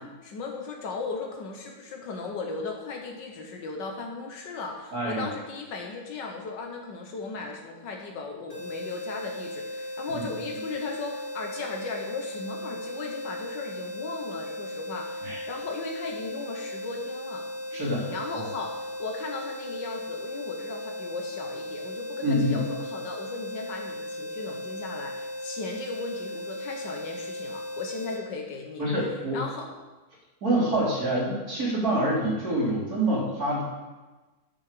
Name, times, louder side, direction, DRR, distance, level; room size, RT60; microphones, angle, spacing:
voice 1, 0.0-17.5 18.1-28.8 29.3-29.7, left 4 dB, 85° left, 2 dB, 1.9 m, -37 dB
voice 2, 4.9-5.3 10.2-10.3 15.2-15.4 17.7-18.5 22.2-22.6 28.8-29.4 30.4-33.6, right 1 dB, 55° right, -5 dB, 4.1 m, -26 dB
sound 1, 8.5-28.2, left 1 dB, 35° left, 3.0 m, -37 dB
9.4 x 8.8 x 6.7 m, 1.2 s
omnidirectional pair, 1.9 m